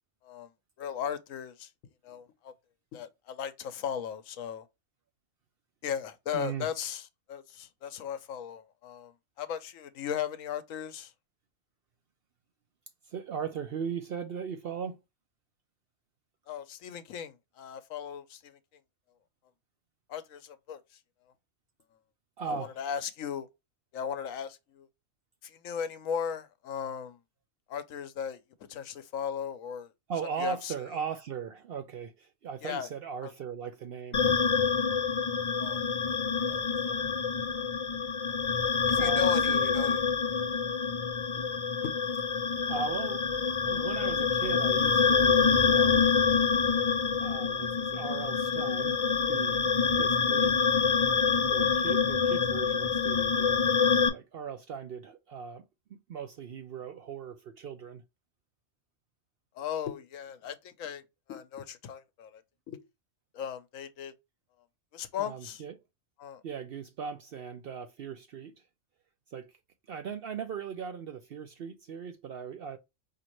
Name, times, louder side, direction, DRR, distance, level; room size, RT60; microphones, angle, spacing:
voice 1, 0.8-1.7 2.0-2.5 2.9-4.6 5.8-9.1 9.4-11.1 16.5-18.6 20.1-21.0 22.4-23.5 23.9-24.9 25.4-27.2 27.7-28.4 28.7-29.9 30.4-30.7 32.6-32.9 33.2-33.3 35.6-36.2 36.5-36.6 36.9-37.1 38.9-40.0 41.8-41.9 59.5-61.0 61.3-62.8 63.3-64.1 64.9-65.6 66.2-66.4, left 8 dB, 80° left, 1.0 m, -37 dB
voice 2, 6.3-6.7 13.1-15.0 22.4-22.7 30.1-34.5 39.0-39.7 42.7-43.2 43.6-46.1 47.2-49.0 49.3-49.7 50.0-50.6 51.5-53.7 54.1-55.6 55.9-58.0 65.2-65.7 66.4-68.5 69.3-69.5 69.9-72.8, right 6 dB, 60° right, 0.6 m, -38 dB
sound 1, 34.1-54.1, left 5 dB, 35° left, 0.5 m, -26 dB
5.1 x 2.8 x 3.0 m
omnidirectional pair, 1.4 m